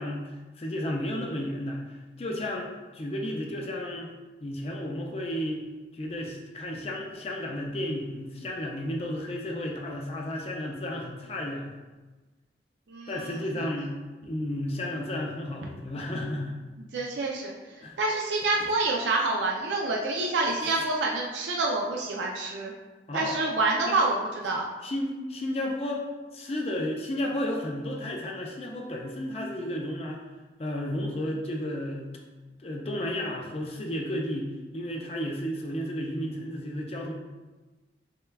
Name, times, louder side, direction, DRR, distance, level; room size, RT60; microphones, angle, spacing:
voice 1, 0.0-4.1 4.4-5.6 5.9-11.7 13.1-13.9 14.2-16.6 17.8-18.0 18.6-18.7 20.6-20.8 23.1-23.4 23.9-24.0 24.8-30.2 30.6-32.1 32.6-37.1, left 1 dB, 35° left, 0 dB, 0.4 m, -33 dB
voice 2, 16.8-17.5 18.0-22.7 23.1-24.2 24.4-24.6, right 3 dB, 90° right, -1 dB, 0.4 m, -27 dB
6.4 x 2.2 x 2.2 m, 1.2 s
head